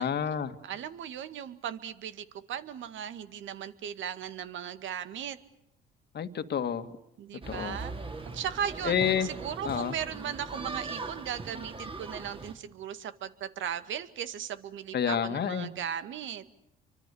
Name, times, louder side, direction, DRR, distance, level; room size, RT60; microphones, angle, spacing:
voice 1, 0.0-0.5 6.1-6.9 7.5-7.8 8.9-9.3 9.6-9.9 14.9-15.7, left 8 dB, 50° left, 9 dB, 2.0 m, -29 dB
voice 2, 0.6-5.4 7.2-7.9 8.3-16.4, right 9 dB, 65° right, 11 dB, 2.0 m, -37 dB
sound 1, 7.4-12.5, right 3 dB, 25° right, 3.3 m, -40 dB
29.0 x 25.0 x 7.1 m, 0.82 s
supercardioid pair, 70°, 21 cm